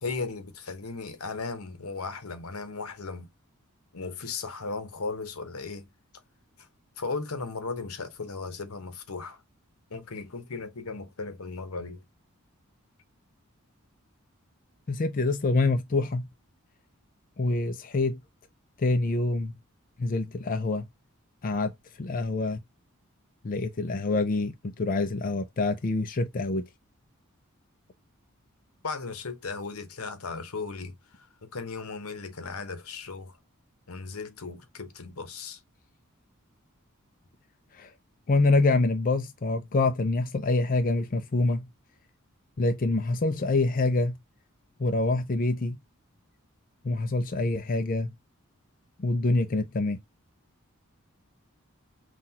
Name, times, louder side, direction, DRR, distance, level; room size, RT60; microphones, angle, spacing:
voice 1, 0.0-3.3 3.9-5.9 6.6-6.7 7.0-9.4 9.9-12.0 28.8-33.4 33.9-35.6, left 4 dB, 85° left, 1.0 m, -36 dB
voice 2, 14.9-16.3 17.4-18.2 18.8-19.5 20.0-20.8 21.4-21.7 22.0-22.6 23.4-26.7 37.7-37.9 38.3-41.7 42.6-44.1 44.8-45.8 46.8-48.1 49.0-50.0, left 3 dB, 40° left, 0.5 m, -26 dB
5.7 x 2.4 x 2.8 m
head